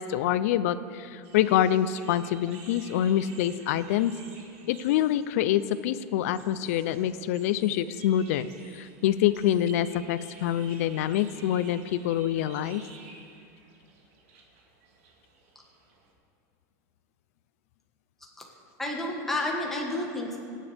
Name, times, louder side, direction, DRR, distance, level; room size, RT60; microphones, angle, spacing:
voice 1, 0.0-4.1 4.7-8.5 8.7-12.8, left 11 dB, 60° left, 15 dB, 0.5 m, -26 dB
sound 1, 1.2-16.1, right 4 dB, 55° right, 2.1 m, -52 dB
voice 2, 18.8-20.4, left 1 dB, 5° left, -2 dB, 1.5 m, -31 dB
23.0 x 10.0 x 3.5 m, 2.4 s
supercardioid pair, 175°, 9 cm